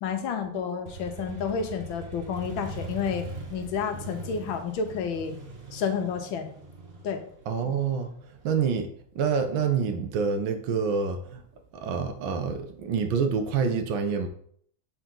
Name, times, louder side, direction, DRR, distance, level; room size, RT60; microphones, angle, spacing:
voice 1, 0.0-5.3 5.7-6.5 7.0-7.2, left 6 dB, 75° left, 6 dB, 1.5 m, -30 dB
Motorcycle, 0.9-8.5, right 2 dB, 40° right, 1.1 m, -41 dB
voice 2, 7.5-8.1 8.4-11.4 11.7-14.3, right 6 dB, 75° right, 7 dB, 1.5 m, -27 dB
7.2 x 3.9 x 3.7 m, 0.62 s
omnidirectional pair, 2.2 m